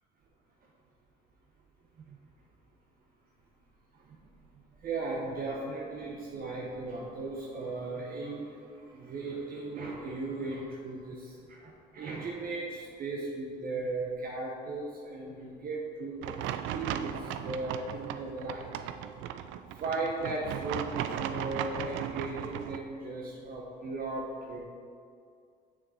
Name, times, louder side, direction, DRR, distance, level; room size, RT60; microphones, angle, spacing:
voice 1, 3.9-4.3 4.5-16.3 16.6-18.7 19.7-24.6, right 3 dB, 50° right, -3 dB, 1.1 m, -37 dB
sound 1, 16.2-22.8, right 10 dB, 75° right, 0.4 m, -37 dB
6.9 x 6.3 x 4.2 m, 2.4 s
supercardioid pair, 85°, 20 cm